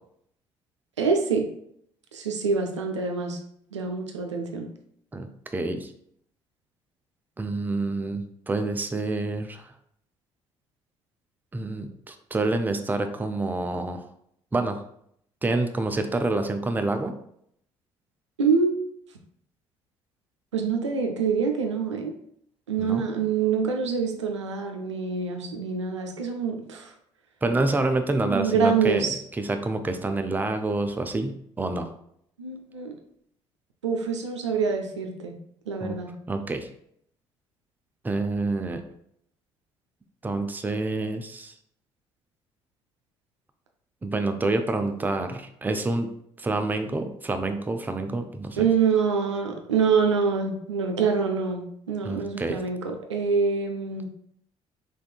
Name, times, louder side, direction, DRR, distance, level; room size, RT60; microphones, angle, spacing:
voice 1, 1.0-1.5 2.1-3.4 3.7-4.7 18.4-18.7 20.5-22.1 22.7-26.9 28.2-29.2 32.4-33.0 33.8-35.3 35.7-36.1 48.6-54.1, right 5 dB, 85° right, 3 dB, 0.4 m, -25 dB
voice 2, 5.1-5.9 7.4-9.7 11.5-14.1 14.5-14.8 15.4-17.1 22.8-23.0 27.4-31.9 35.8-36.0 36.3-36.7 38.0-38.8 40.2-41.5 44.0-46.1 46.4-48.7 52.0-52.6, right 2 dB, 10° right, 7 dB, 0.4 m, -27 dB
3.6 x 3.3 x 2.3 m, 0.70 s
figure-of-eight pair, 50°, 15 cm